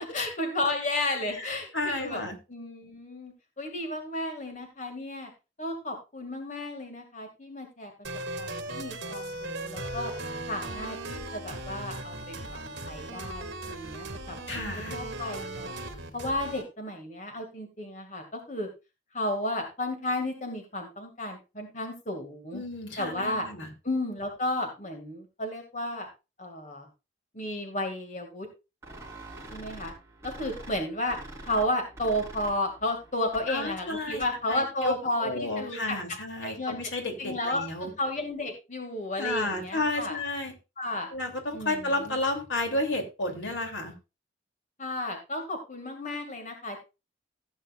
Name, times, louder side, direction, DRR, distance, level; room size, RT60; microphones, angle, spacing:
voice 1, 0.0-5.3 5.6-7.9 8.4-10.1 10.5-12.6 12.8-14.4 14.9-15.7 16.1-18.7 19.1-22.6 23.0-23.5 23.8-26.1 26.4-26.9 27.3-28.5 29.5-29.9 30.2-31.2 31.4-36.0 36.4-36.8 37.2-37.6 38.0-40.2 40.8-41.1 41.5-42.2 44.8-46.8, left 1 dB, 40° left, 4 dB, 2.3 m, -33 dB
voice 2, 1.3-2.4 14.5-15.0 22.5-23.7 33.5-34.2 34.5-34.9 35.2-37.9 39.2-40.5 41.1-43.9, left 2 dB, 75° left, 4 dB, 3.0 m, -32 dB
sound 1, 8.0-16.6, right 2 dB, 65° right, 2.3 m, -38 dB
sound 2, 28.8-34.5, right 1 dB, 15° right, 3.9 m, -46 dB
16.0 x 8.9 x 2.5 m, 0.27 s
head